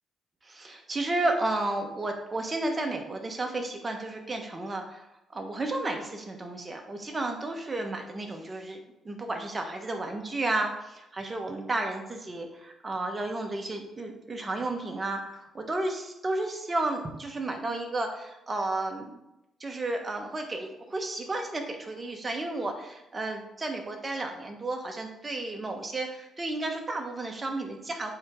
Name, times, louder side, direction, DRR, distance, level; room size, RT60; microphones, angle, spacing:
voice 1, 0.4-5.1 5.3-8.8 9.0-19.2 19.6-28.1, right 2 dB, 25° right, 4 dB, 1.2 m, -32 dB
7.9 x 4.5 x 3.7 m, 0.91 s
cardioid pair, 90°, 0 cm